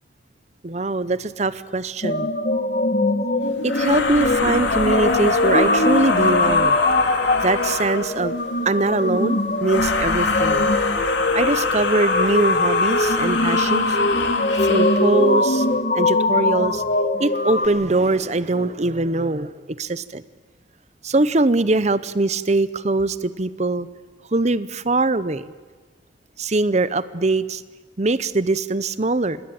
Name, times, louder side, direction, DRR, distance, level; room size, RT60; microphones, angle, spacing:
voice 1, 0.6-2.3 3.6-6.8 7.4-8.4 8.6-10.7 11.0-14.0 14.6-15.7 15.9-16.8 17.2-20.2 21.0-23.9 24.3-25.4 26.4-27.6 28.0-29.4, right 2 dB, 35° right, 16 dB, 0.8 m, -22 dB
sound 1, 2.0-17.7, left 2 dB, 45° left, 1.6 m, -21 dB
sound 2, 3.7-8.2 9.6-15.1, left 4 dB, 70° left, 3.4 m, -25 dB
27.0 x 20.5 x 8.9 m, 1.4 s
head